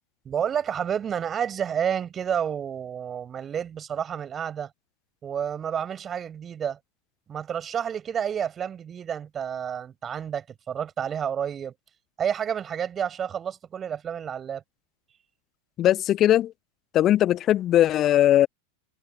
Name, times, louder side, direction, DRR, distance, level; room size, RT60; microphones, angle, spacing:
voice 1, 0.3-4.7 5.2-6.8 7.3-11.7 12.2-14.6, right 8 dB, 25° right, 7.2 m, -30 dB
voice 2, 15.8-16.5 16.9-18.5, left 12 dB, 30° left, 1.1 m, -19 dB
figure-of-eight pair, 90°, 0 cm